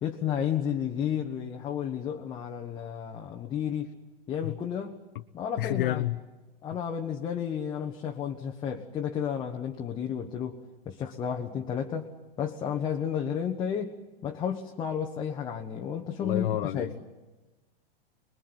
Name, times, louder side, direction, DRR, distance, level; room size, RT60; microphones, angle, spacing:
voice 1, 0.0-3.9 4.3-5.0 5.3-6.1 6.6-10.6 10.8-12.1 12.4-14.0 14.2-16.9, left 8 dB, 15° left, 1.1 m, -32 dB
voice 2, 5.6-6.2 16.2-17.0, left 14 dB, 60° left, 0.9 m, -29 dB
26.5 x 21.5 x 9.7 m
supercardioid pair, 165°, 30 cm